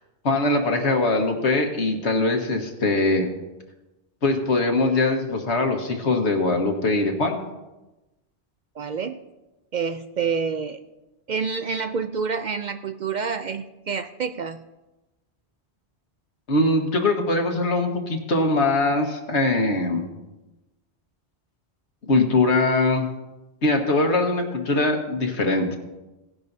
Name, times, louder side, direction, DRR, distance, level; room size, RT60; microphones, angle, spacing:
voice 1, 0.2-3.3 4.2-7.4 16.5-20.0 22.1-23.1 23.6-25.8, left 2 dB, 85° left, 3 dB, 1.7 m, -22 dB
voice 2, 8.8-9.2 9.7-10.8 11.3-14.6, right 5 dB, 55° right, 8 dB, 0.5 m, -28 dB
17.5 x 10.5 x 2.7 m, 1.0 s
omnidirectional pair, 1.1 m